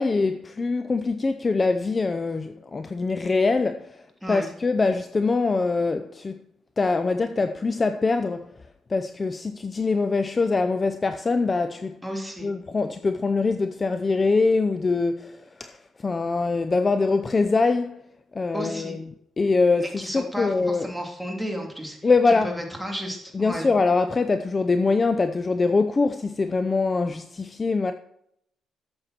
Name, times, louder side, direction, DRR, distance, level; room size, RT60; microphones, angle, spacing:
voice 1, 0.0-6.4 6.8-8.5 8.9-12.0 12.4-18.0 18.3-19.0 19.4-20.9 22.0-22.5 23.3-27.9, left 3 dB, 30° left, 0.6 m, -23 dB
voice 2, 4.2-4.5 12.0-12.5 18.5-19.0 19.8-23.7, equal, 5° right, 2.9 m, -33 dB
12.0 x 7.6 x 4.5 m
cardioid pair, 90°, 0 cm